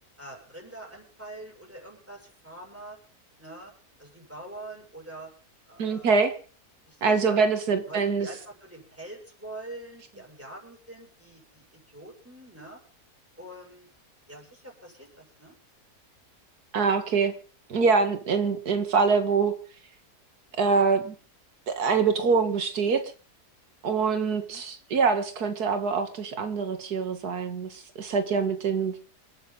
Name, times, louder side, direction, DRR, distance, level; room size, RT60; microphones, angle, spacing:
voice 1, 0.2-3.0 3.4-3.7 4.0-5.3 5.7-6.3 6.9-7.5 7.9-12.8 13.4-13.9 14.3-15.6 24.4-24.6, right 1 dB, 10° right, 0 dB, 7.3 m, -44 dB
voice 2, 5.8-6.3 7.0-8.3 16.7-17.3 17.7-19.5 20.6-21.1 21.7-23.0 23.8-29.0, right 5 dB, 85° right, 8 dB, 2.1 m, -24 dB
28.0 x 9.5 x 4.0 m, 0.39 s
omnidirectional pair, 1.6 m